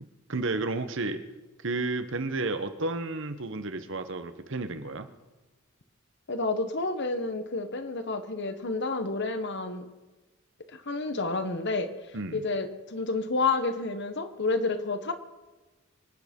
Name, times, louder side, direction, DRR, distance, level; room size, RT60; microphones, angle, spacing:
voice 1, 0.3-1.2 1.6-5.1 12.1-12.4, right 2 dB, 65° right, 9 dB, 1.2 m, -32 dB
voice 2, 6.3-9.9 10.7-15.1, left 3 dB, 55° left, 9 dB, 1.3 m, -30 dB
24.5 x 9.0 x 5.4 m, 1.2 s
head